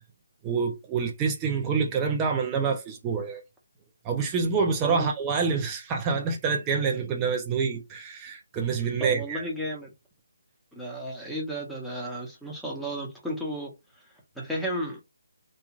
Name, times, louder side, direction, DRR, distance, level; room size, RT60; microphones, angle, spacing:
voice 1, 0.4-3.4 4.0-9.4, right 5 dB, 15° right, 0.5 m, -27 dB
voice 2, 9.0-9.9 10.7-13.7 14.4-15.0, equal, ahead, 0.9 m, -33 dB
3.0 x 2.3 x 2.4 m
figure-of-eight pair, 150°, 0 cm